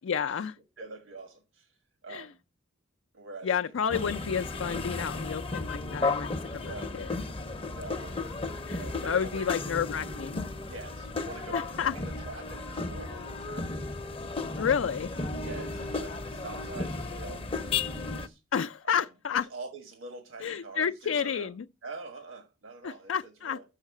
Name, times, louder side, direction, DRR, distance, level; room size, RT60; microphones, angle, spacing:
voice 1, 0.0-0.6 2.1-2.3 3.4-7.1 8.7-10.5 11.5-12.0 14.6-15.1 18.5-19.5 20.4-21.7 22.8-23.6, left 7 dB, 75° left, 0.4 m, -30 dB
voice 2, 0.8-1.7 2.0-2.4 3.1-3.5 6.6-7.0 7.7-8.3 8.7-9.7 10.7-14.3 15.4-18.4 18.8-19.1 19.3-21.5 21.8-23.6, right 3 dB, 85° right, 1.6 m, -45 dB
sound 1, 3.9-18.3, left 3 dB, 30° left, 0.6 m, -34 dB
6.5 x 5.7 x 7.2 m
head